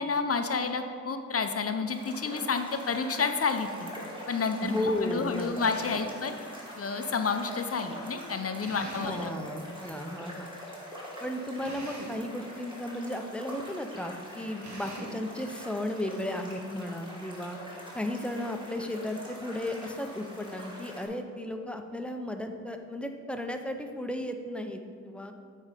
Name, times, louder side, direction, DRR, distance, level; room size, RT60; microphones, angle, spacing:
voice 1, 0.0-3.9 4.3-6.4 6.8-9.3, left 4 dB, 50° left, 7 dB, 0.6 m, -30 dB
sound 1, 1.9-21.1, equal, 15° right, 1.9 m, -44 dB
voice 2, 4.6-5.6 8.8-10.5 11.2-17.6 17.9-25.3, left 1 dB, 5° left, 5 dB, 0.6 m, -34 dB
Drill, 5.6-6.1 8.6-9.2 11.6-12.2 14.6-15.2, right 2 dB, 65° right, 1.2 m, -42 dB
8.8 x 4.3 x 5.0 m, 2.2 s
wide cardioid pair, 75°, 30 cm